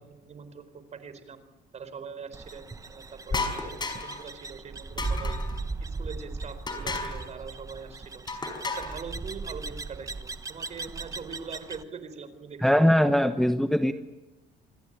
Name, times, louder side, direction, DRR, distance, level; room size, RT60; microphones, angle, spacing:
voice 1, 0.0-1.4 1.7-5.4 5.8-8.2 8.6-12.8, right 5 dB, 40° right, 12 dB, 4.2 m, -42 dB
sound 1, 2.3-11.8, right 3 dB, 20° right, 1.3 m, -37 dB
sound 2, 3.3-4.3 5.0-5.6 6.7-7.2 8.3-9.0, left 3 dB, 25° left, 5.2 m, -33 dB
voice 2, 12.6-13.9, equal, ahead, 8 dB, 1.1 m, -21 dB
27.0 x 20.5 x 8.8 m, 1.0 s
cardioid pair, 110°, 17 cm